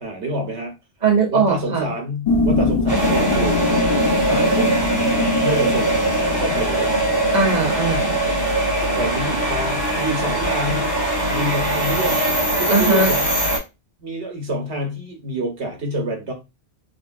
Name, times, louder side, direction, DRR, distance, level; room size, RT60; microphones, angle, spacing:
voice 1, 0.0-0.7 1.3-3.6 4.3-4.7 5.4-6.0 6.4-6.9 9.0-10.9 11.3-12.2 12.6-13.2 14.0-16.3, right 1 dB, 80° right, 1.2 m, -27 dB
voice 2, 1.0-1.9 7.3-8.2 12.7-13.1, right 4 dB, 45° right, 0.8 m, -19 dB
sound 1, 2.3-8.5, left 4 dB, 50° left, 0.4 m, -24 dB
sound 2, 2.9-13.6, right 1 dB, 10° right, 1.3 m, -21 dB
3.4 x 2.2 x 2.5 m
omnidirectional pair, 1.1 m